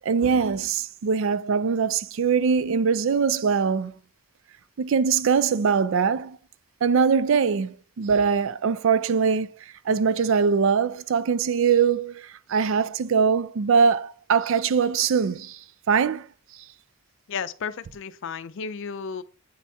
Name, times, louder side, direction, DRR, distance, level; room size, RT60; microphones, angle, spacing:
voice 1, 0.0-4.0 4.8-6.4 6.8-9.6 9.9-15.6 15.9-16.2, right 6 dB, 65° right, 0.4 m, -22 dB
voice 2, 17.3-19.2, left 6 dB, 60° left, 0.5 m, -33 dB
8.3 x 4.2 x 3.5 m
head